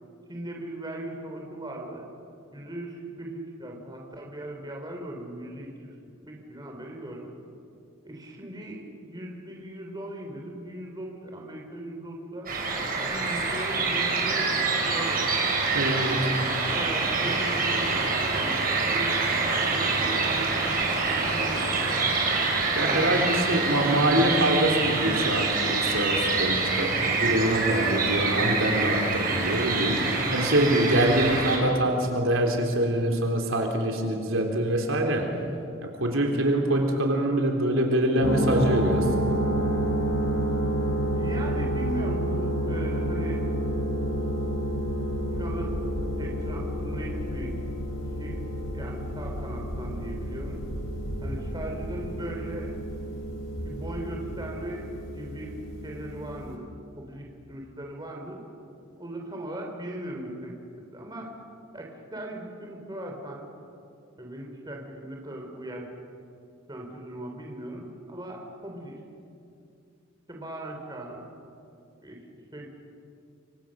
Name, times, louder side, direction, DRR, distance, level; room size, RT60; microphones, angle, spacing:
voice 1, 0.3-2.1 2.5-6.0 6.2-7.4 8.0-12.5 13.0-14.5 14.8-15.3 16.7-21.7 22.8-23.2 36.3-36.6 41.2-43.4 45.3-45.7 46.2-47.6 48.2-48.4 48.7-50.7 51.2-52.7 53.6-54.9 55.1-56.7 57.0-58.4 59.0-60.6 60.9-61.3 61.7-63.5 64.2-65.9 66.7-69.0 70.3-71.3 72.0-72.2 72.5-72.7, right 1 dB, 20° right, 0 dB, 3.5 m, -38 dB
sound 1, 12.5-31.6, right 4 dB, 45° right, 5.4 m, -26 dB
voice 2, 15.7-16.3 22.8-35.3 35.8-39.4, right 1 dB, 85° right, 2 dB, 3.6 m, -24 dB
sound 2, 38.2-56.6, right 1 dB, 75° left, 3.8 m, -30 dB
27.5 x 24.5 x 6.5 m, 2.5 s
head